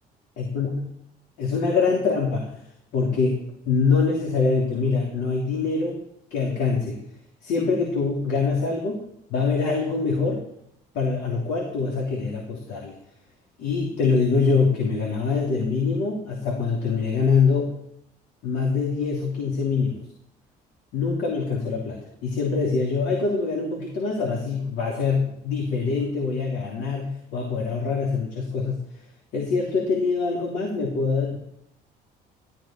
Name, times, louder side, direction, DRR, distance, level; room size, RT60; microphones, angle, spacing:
voice 1, 0.4-0.7 1.4-2.5 2.9-6.0 6.3-7.0 7.4-10.5 10.9-12.9 13.6-17.8 18.4-20.0 20.9-28.8 29.3-31.4, left 4 dB, 85° left, -2 dB, 3.3 m, -24 dB
15.0 x 13.0 x 4.5 m, 0.76 s
cardioid pair, 110°, 17 cm